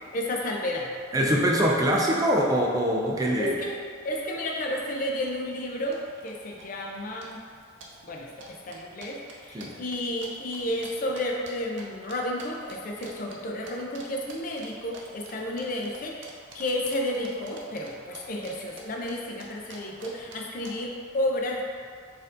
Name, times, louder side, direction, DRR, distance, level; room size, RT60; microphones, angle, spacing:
voice 1, 0.1-0.9 1.2-1.3 3.4-3.8 4.0-6.0 6.2-7.4 8.0-21.6, left 1 dB, 45° left, 0 dB, 0.5 m, -32 dB
voice 2, 1.1-3.6 9.5-9.7, equal, 20° right, -2 dB, 0.4 m, -23 dB
sound 1, 4.6-4.7 4.9-5.3 5.6-6.3 6.6-7.0 7.2-11.8 12.1-12.8 13.0-13.4 13.6-14.0 14.3-18.5 18.8-20.7, right 3 dB, 75° right, 0.6 m, -46 dB
4.3 x 2.7 x 3.7 m, 2.1 s
head